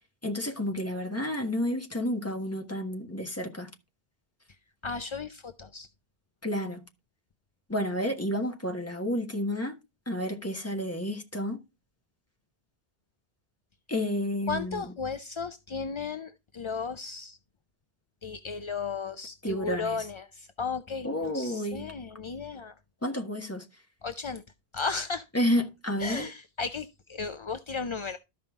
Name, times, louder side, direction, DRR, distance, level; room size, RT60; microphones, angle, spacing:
voice 1, 0.2-3.7 6.4-6.8 7.7-9.8 10.1-11.6 13.9-14.8 19.4-20.0 21.0-21.9 23.0-23.7 25.3-26.3, left 1 dB, 15° left, 1.4 m, -30 dB
voice 2, 4.8-5.9 14.5-17.4 18.2-22.7 24.0-24.4 24.7-25.3 26.0-28.2, left 5 dB, 40° left, 0.4 m, -35 dB
13.0 x 5.5 x 3.6 m
omnidirectional pair, 1.1 m